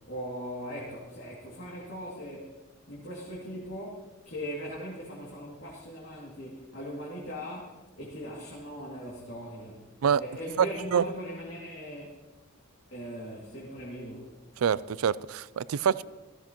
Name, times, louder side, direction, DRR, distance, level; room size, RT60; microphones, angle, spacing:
voice 1, 0.1-2.6 2.9-9.8 10.2-12.2 12.9-14.4, equal, 60° left, -4 dB, 2.5 m, -40 dB
voice 2, 10.6-11.1 14.6-16.0, right 7 dB, 80° right, 19 dB, 0.4 m, -26 dB
16.5 x 14.5 x 3.0 m, 1.1 s
head